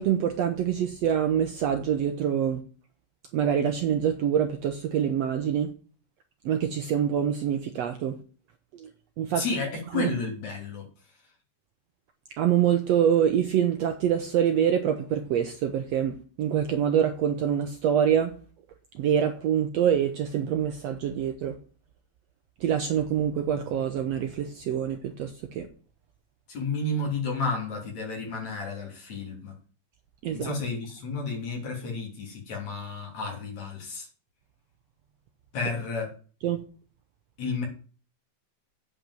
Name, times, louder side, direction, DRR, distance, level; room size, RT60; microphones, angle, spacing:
voice 1, 0.0-2.6 3.3-5.7 6.4-8.2 8.8-8.9 9.2-9.4 9.9-10.1 12.4-18.4 18.9-21.5 22.6-25.7 30.2-30.5 36.4-36.6, right 9 dB, 70° right, 1.7 m, -25 dB
voice 2, 9.3-10.8 26.5-29.5 30.3-34.1 35.5-36.1 37.4-37.7, left 3 dB, 60° left, 4.5 m, -31 dB
8.7 x 5.5 x 7.8 m
omnidirectional pair, 3.7 m